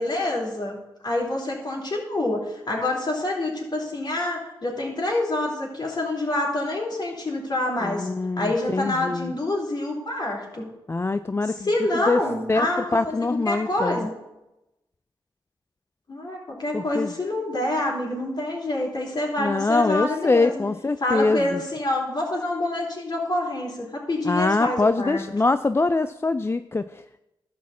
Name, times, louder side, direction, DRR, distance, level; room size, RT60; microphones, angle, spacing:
voice 1, 0.0-8.1 8.4-10.7 11.4-14.1 16.1-20.6 21.0-25.2, left 1 dB, 45° left, -2 dB, 3.5 m, -27 dB
voice 2, 7.8-9.3 10.9-11.5 12.1-12.2 12.5-12.7 12.9-14.1 16.7-17.1 19.4-21.6 24.3-27.2, left 3 dB, 25° left, 11 dB, 0.4 m, -23 dB
11.5 x 4.2 x 7.3 m, 0.93 s
supercardioid pair, 45°, 10 cm